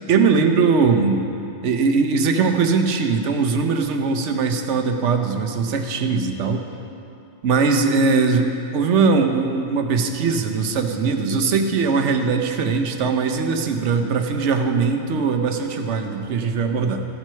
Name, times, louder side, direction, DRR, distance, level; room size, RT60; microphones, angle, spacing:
voice 1, 0.1-1.2 1.6-6.7 7.4-17.1, right 4 dB, 75° right, 5 dB, 1.1 m, -20 dB
14.5 x 6.0 x 5.7 m, 2.8 s
omnidirectional pair, 1.2 m